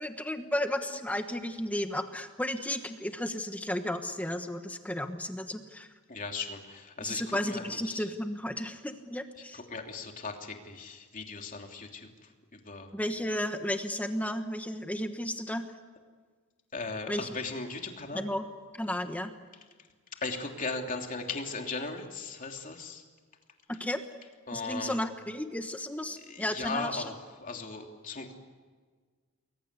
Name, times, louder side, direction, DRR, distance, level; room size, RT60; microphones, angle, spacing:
voice 1, 0.0-5.9 7.0-9.6 12.9-15.7 17.1-17.3 18.1-18.4 18.7-19.3 23.8-24.0 24.5-27.0, left 1 dB, 5° left, 7 dB, 1.2 m, -33 dB
voice 2, 6.1-8.1 9.4-12.9 16.7-18.3 20.2-23.0 24.5-25.0 26.2-28.3, left 3 dB, 35° left, 3 dB, 3.0 m, -38 dB
29.5 x 22.0 x 8.2 m, 1.5 s
head